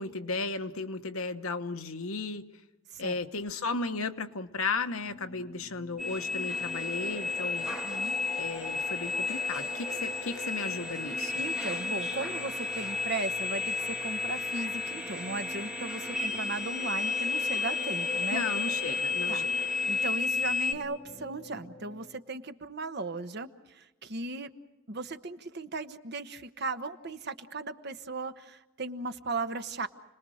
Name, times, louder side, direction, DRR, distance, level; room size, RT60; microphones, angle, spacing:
voice 1, 0.0-2.4 3.0-7.7 8.4-11.3 18.3-19.4, left 3 dB, 70° left, 7 dB, 1.3 m, -35 dB
sound 1, 4.9-22.2, left 1 dB, 15° left, 1.5 m, -45 dB
sound 2, 6.0-20.7, left 4 dB, 5° right, 1.7 m, -32 dB
voice 2, 7.8-8.2 11.4-18.5 19.3-19.5 19.9-24.5 24.9-29.9, right 3 dB, 50° right, 9 dB, 1.1 m, -37 dB
29.5 x 20.5 x 6.4 m, 1.0 s
head